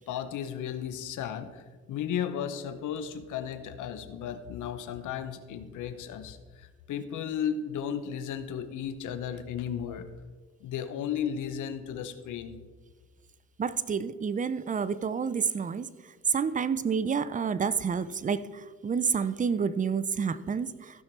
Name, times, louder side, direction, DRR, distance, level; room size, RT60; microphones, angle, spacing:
voice 1, 0.1-10.1 10.6-12.6, left 8 dB, 80° left, 11 dB, 0.9 m, -34 dB
voice 2, 13.6-15.9 16.3-18.4 18.8-20.7, right 6 dB, 25° right, 15 dB, 0.5 m, -28 dB
15.0 x 5.8 x 4.5 m, 1.4 s
cardioid pair, 90°, 30 cm